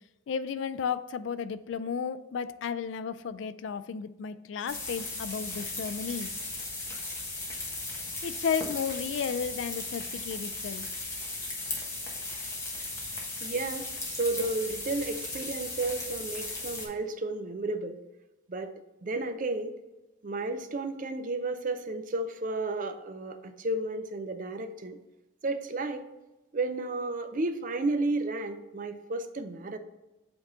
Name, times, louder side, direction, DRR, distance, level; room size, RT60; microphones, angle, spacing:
voice 1, 0.3-6.3 8.2-10.8, left 6 dB, 65° left, 13 dB, 0.3 m, -33 dB
sound 1, 4.7-16.9, left 2 dB, 15° left, 1.2 m, -37 dB
voice 2, 13.4-18.0 18.5-18.7 19.0-19.8 20.2-25.0 25.4-26.0 26.5-29.8, right 2 dB, 40° right, 9 dB, 0.5 m, -32 dB
7.9 x 3.5 x 3.8 m, 1.0 s
head